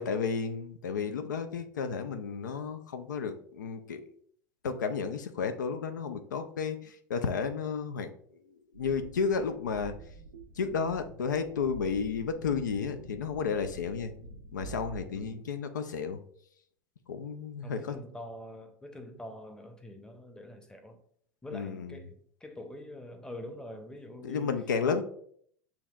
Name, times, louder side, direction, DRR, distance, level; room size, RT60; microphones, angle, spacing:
voice 1, 0.0-4.0 4.6-8.1 8.7-9.9 10.6-14.1 14.5-16.2 17.1-18.0 21.5-22.0 24.2-25.0, left 5 dB, 85° left, 0.4 m, -32 dB
sound 1, 8.7-15.3, right 2 dB, 90° right, 0.5 m, -46 dB
voice 2, 15.1-15.5 17.6-21.0 21.4-22.2 22.4-25.0, left 1 dB, 10° left, 0.7 m, -45 dB
6.9 x 2.9 x 2.4 m
hypercardioid pair, 90°, 10 cm